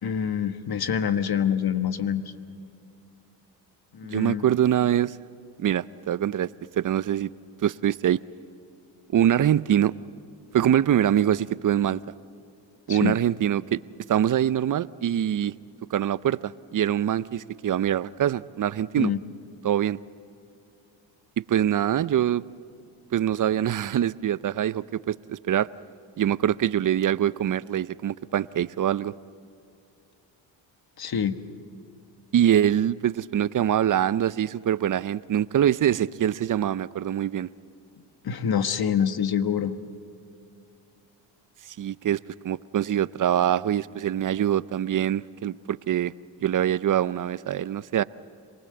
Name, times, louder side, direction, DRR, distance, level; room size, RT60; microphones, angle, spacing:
voice 1, 0.0-2.2 3.9-4.4 12.9-13.2 19.0-19.2 31.0-31.4 38.2-39.7, left 8 dB, 45° left, 10 dB, 1.5 m, -26 dB
voice 2, 4.0-5.2 5.6-6.5 6.8-7.3 7.6-8.2 9.1-9.9 10.5-12.0 12.9-13.8 14.1-15.5 15.9-19.1 19.6-20.0 21.5-22.4 23.1-25.7 26.2-29.1 32.3-37.5 41.8-46.1 46.4-48.0, right 10 dB, 40° right, 18 dB, 0.6 m, -24 dB
26.5 x 20.0 x 7.8 m, 2.6 s
supercardioid pair, 65°, 49 cm